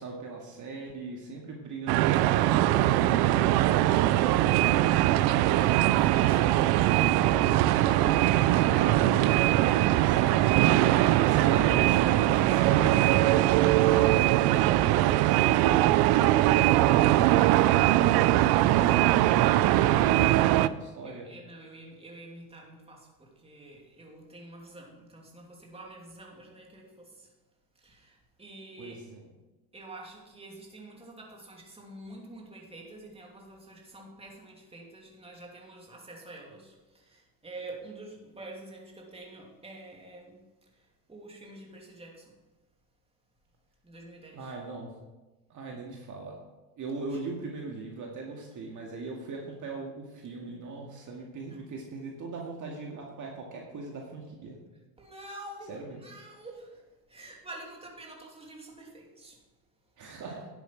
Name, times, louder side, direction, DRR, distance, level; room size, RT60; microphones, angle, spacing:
voice 1, 0.0-5.2 5.9-9.3 9.9-10.5 11.2-21.3 28.8-29.2 44.3-44.9 45.5-46.4 46.8-54.6 55.7-56.0 60.0-60.5, right 3 dB, 40° right, 0 dB, 2.1 m, -40 dB
sound 1, 1.9-20.7, right 14 dB, 55° right, 0.6 m, -22 dB
voice 2, 6.0-6.5 21.0-27.3 27.7-29.0 29.7-40.4 40.7-42.4 43.8-44.5 51.4-51.6 55.0-59.4, right 2 dB, 15° right, -1 dB, 2.8 m, -47 dB
10.5 x 8.3 x 4.6 m, 1.1 s
supercardioid pair, 105°, 45 cm